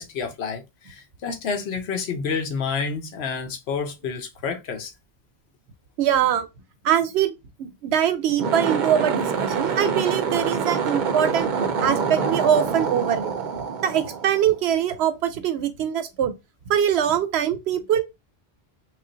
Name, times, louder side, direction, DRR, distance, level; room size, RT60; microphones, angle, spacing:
voice 1, 0.0-4.9, left 5 dB, 85° left, 1.0 m, -29 dB
voice 2, 6.0-6.5 6.8-11.5 11.8-13.3 13.8-16.3 16.7-18.0, right 9 dB, 85° right, 0.9 m, -23 dB
sound 1, 8.3-14.8, right 6 dB, 55° right, 0.6 m, -26 dB
3.2 x 2.5 x 3.8 m
omnidirectional pair, 1.1 m